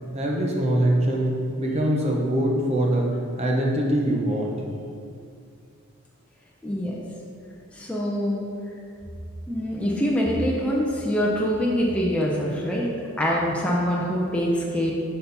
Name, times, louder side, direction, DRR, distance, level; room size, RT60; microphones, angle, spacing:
voice 1, 0.1-4.5, right 1 dB, 30° right, -1 dB, 0.8 m, -23 dB
voice 2, 6.6-7.0 7.7-8.5 9.5-12.9 13.2-14.9, equal, 5° left, -4 dB, 0.6 m, -24 dB
6.5 x 5.5 x 4.0 m, 2.4 s
head